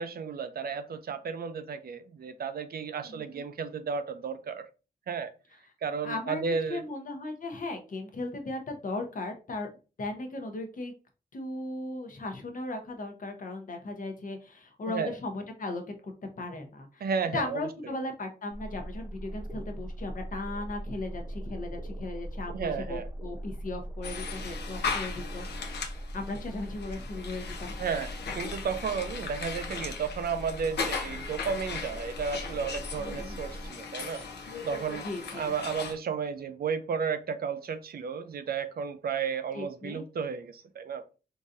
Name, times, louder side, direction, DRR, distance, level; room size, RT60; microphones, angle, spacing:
voice 1, 0.0-4.6 5.1-5.3 5.8-6.8 14.9-15.1 17.0-17.6 22.5-23.1 27.8-34.2 34.6-35.1 35.3-41.0, right 6 dB, 65° right, 0.4 m, -33 dB
voice 2, 3.0-3.4 6.0-6.4 6.7-9.7 10.0-10.9 11.3-15.8 16.4-27.7 33.0-33.4 35.0-35.5 39.5-40.0, left 2 dB, 55° left, 0.8 m, -37 dB
sound 1, 18.5-33.7, equal, 20° right, 0.8 m, -40 dB
sound 2, 24.0-35.9, left 5 dB, 85° left, 0.6 m, -38 dB
3.9 x 2.6 x 2.5 m
wide cardioid pair, 95°, 17 cm